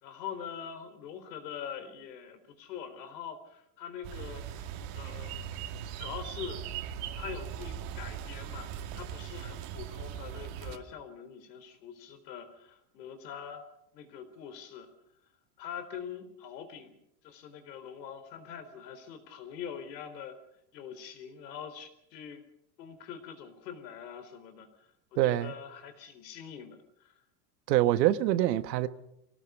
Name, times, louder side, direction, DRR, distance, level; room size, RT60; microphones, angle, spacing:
voice 1, 0.0-4.7 4.9-5.4 6.0-6.6 7.2-13.6 13.9-14.9 15.6-17.0 17.2-20.4 20.7-22.4 22.8-24.7 25.1-27.1, left 8 dB, 90° left, 4.1 m, -44 dB
sound 1, 4.0-10.8, right 9 dB, 55° right, 2.2 m, -39 dB
voice 2, 25.2-25.5 27.7-28.9, right 14 dB, 85° right, 1.4 m, -25 dB
24.0 x 17.5 x 6.8 m
supercardioid pair, 150°, 48 cm